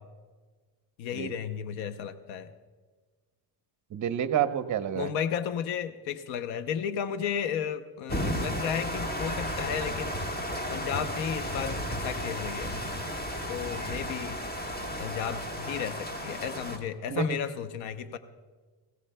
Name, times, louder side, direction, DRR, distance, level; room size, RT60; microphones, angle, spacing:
voice 1, 1.0-2.5 4.9-10.2 10.7-12.7 13.5-14.4 15.0-18.2, left 8 dB, 85° left, 10 dB, 0.8 m, -33 dB
voice 2, 3.9-5.1 17.1-17.4, right 9 dB, 40° right, 10 dB, 0.8 m, -29 dB
sound 1, 8.1-16.8, equal, 20° left, 1.5 m, -33 dB
21.0 x 16.0 x 2.2 m, 1.4 s
cardioid pair, 100°, 45 cm